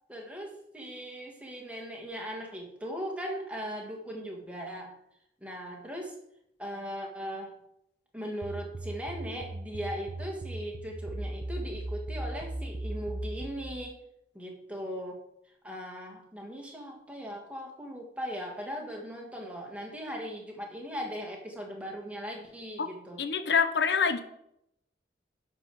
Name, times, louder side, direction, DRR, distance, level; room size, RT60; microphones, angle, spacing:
voice 1, 0.1-5.0 5.4-6.2 6.6-7.6 8.1-14.0 14.3-15.3 15.6-23.2, equal, 5° right, 0 dB, 1.6 m, -39 dB
sound 1, 8.4-13.7, right 1 dB, 55° right, 0.7 m, -37 dB
voice 2, 23.2-24.2, left 6 dB, 75° left, 9 dB, 0.7 m, -26 dB
10.5 x 4.7 x 6.2 m, 0.77 s
head